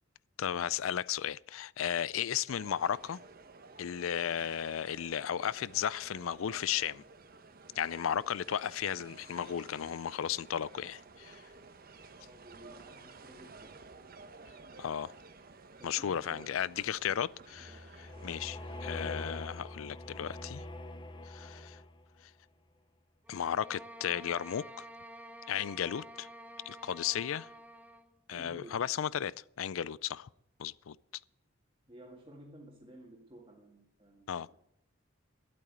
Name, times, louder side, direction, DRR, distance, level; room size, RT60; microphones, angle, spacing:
voice 1, 0.4-3.2 3.8-7.0 7.8-11.4 14.8-15.1 15.8-20.6 21.3-21.8 23.3-24.8 25.5-26.3 26.7-27.5 28.3-30.3 30.6-31.0 34.3-34.5, left 9 dB, 75° left, 0.4 m, -35 dB
sound 1, 2.5-18.8, right 3 dB, 45° right, 1.1 m, -54 dB
voice 2, 12.2-13.8 15.8-16.6 17.6-17.9 28.3-28.8 31.9-34.6, right 1 dB, 25° right, 2.0 m, -54 dB
sound 2, 17.5-22.2, left 1 dB, 25° left, 0.8 m, -44 dB
sound 3, 23.2-28.1, right 1 dB, 10° right, 1.4 m, -50 dB
12.0 x 8.7 x 9.5 m
head